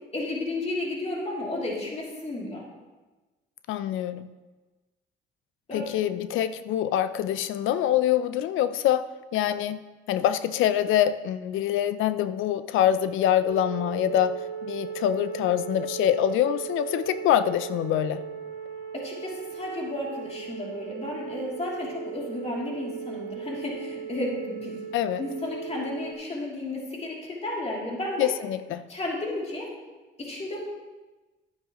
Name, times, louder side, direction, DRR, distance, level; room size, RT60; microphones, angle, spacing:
voice 1, 0.1-2.6 5.7-5.9 18.9-24.8 25.2-28.3 28.9-29.7 30.2-30.6, left 1 dB, 30° left, -3 dB, 2.8 m, -33 dB
voice 2, 3.7-4.3 5.7-9.0 9.3-9.8 10.1-14.3 14.6-18.2 24.9-25.2 28.2-28.8, left 11 dB, 85° left, 13 dB, 0.5 m, -25 dB
sound 1, 13.4-26.1, right 7 dB, 85° right, 1.1 m, -37 dB
11.5 x 9.8 x 3.0 m, 1.2 s
cardioid pair, 90°, 20 cm